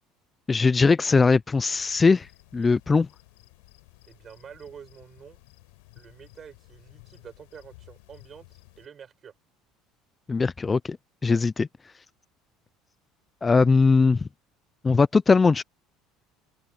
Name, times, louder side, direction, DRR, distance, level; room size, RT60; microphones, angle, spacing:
voice 1, 0.5-3.1 10.3-11.0 11.2-11.7 13.4-14.2 14.8-15.6, left 4 dB, 20° left, 0.4 m, -20 dB
sound 1, 1.7-8.9, left 24 dB, 85° left, 6.4 m, -54 dB
voice 2, 4.1-5.4 5.9-9.3, right 7 dB, 35° right, 4.9 m, -47 dB
open air
supercardioid pair, 100°, 0 cm